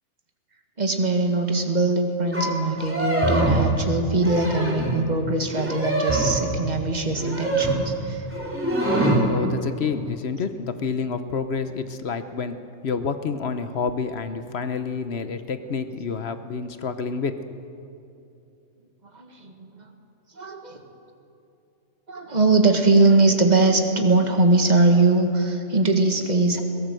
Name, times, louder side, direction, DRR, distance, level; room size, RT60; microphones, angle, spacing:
voice 1, 0.8-8.3 19.1-19.9 20.4-20.8 22.1-26.6, right 2 dB, 30° right, 4 dB, 1.8 m, -21 dB
sound 1, 2.3-2.5 2.7-3.7 4.1-5.0 5.5-6.4 7.2-7.9 8.3-9.3, right 1 dB, 10° right, 3.5 m, -23 dB
voice 2, 9.3-12.6 12.8-17.4, left 5 dB, 50° left, 10 dB, 1.1 m, -28 dB
22.0 x 17.5 x 7.7 m, 2.7 s
omnidirectional pair, 1.5 m